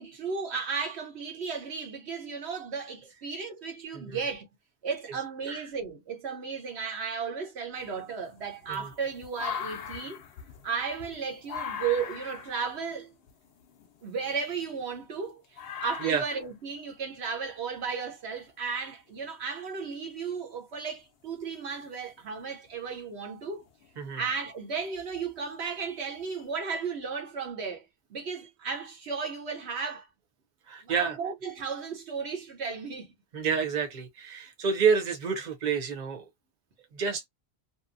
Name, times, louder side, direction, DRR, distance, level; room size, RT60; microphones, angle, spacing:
voice 1, 0.0-4.5 4.8-10.2 10.6-13.1 14.0-15.4 15.8-23.6 24.1-27.8 28.1-30.1 30.8-33.1, right 5 dB, 85° right, 1.2 m, -34 dB
sound 1, 7.8-15.2 15.6-16.5 17.8-17.9 19.2-19.3 21.9-22.2 22.7-23.0 23.6-24.2 24.8-24.9 25.9-26.0 26.4-26.5, left 7 dB, 70° left, 0.8 m, -41 dB
voice 2, 30.7-31.2 33.3-36.2 36.9-37.3, right 6 dB, 45° right, 0.9 m, -28 dB
2.8 x 2.0 x 2.5 m
omnidirectional pair, 1.1 m